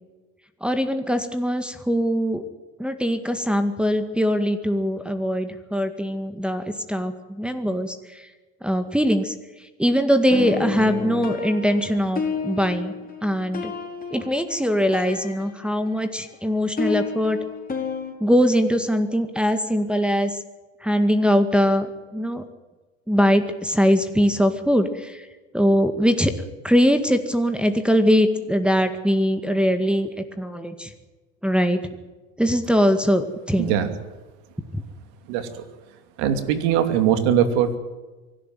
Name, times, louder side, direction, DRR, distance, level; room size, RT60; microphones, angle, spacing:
voice 1, 0.6-2.4 2.8-8.2 8.6-9.3 9.8-12.9 13.2-13.7 14.1-17.4 18.2-20.4 20.8-21.9 22.1-22.4 23.1-25.2 25.5-26.3 26.6-30.1 30.4-30.9 31.4-31.8 32.4-33.7, equal, 5° right, 6 dB, 2.0 m, -21 dB
sound 1, 10.3-16.1 16.3-18.1, left 4 dB, 25° left, 4.7 m, -31 dB
voice 2, 33.6-33.9 35.3-35.5 36.2-37.8, right 9 dB, 80° right, 9 dB, 2.7 m, -21 dB
24.5 x 12.0 x 9.4 m, 1.2 s
supercardioid pair, 85°, 34 cm